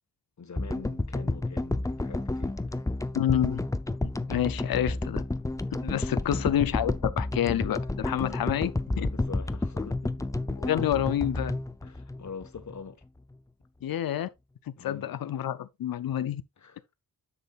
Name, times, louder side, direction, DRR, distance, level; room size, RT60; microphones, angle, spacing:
voice 1, 0.4-2.8 9.1-10.3 11.8-13.0 14.8-15.1 16.6-16.9, left 5 dB, 55° left, 1.4 m, -44 dB
sound 1, 0.6-12.9, left 2 dB, 10° left, 0.5 m, -31 dB
voice 2, 3.1-3.6 4.0-5.2 5.8-9.1 10.6-11.5 13.8-14.3 14.8-16.4, left 11 dB, 90° left, 0.6 m, -28 dB
10.5 x 7.4 x 2.4 m
wide cardioid pair, 115°, 34 cm